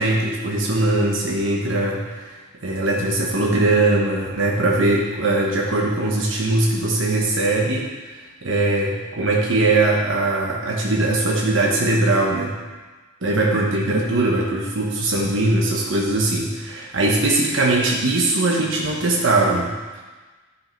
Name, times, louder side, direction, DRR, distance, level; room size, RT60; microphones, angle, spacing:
voice 1, 0.0-2.3 2.6-12.6 13.2-20.0, right 2 dB, 90° right, -2 dB, 1.1 m, -21 dB
10.5 x 5.6 x 4.5 m, 1.3 s
head